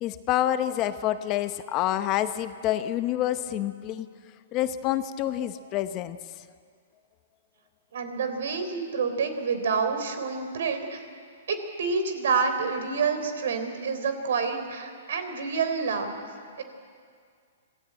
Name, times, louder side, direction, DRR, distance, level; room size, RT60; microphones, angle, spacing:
voice 1, 0.0-4.1 4.5-6.4, left 12 dB, 25° left, 11 dB, 0.8 m, -27 dB
voice 2, 7.9-11.0 11.5-16.2 16.6-16.7, right 5 dB, 75° right, 8 dB, 3.6 m, -28 dB
25.5 x 16.5 x 9.0 m, 2.1 s
hypercardioid pair, 155°, 0 cm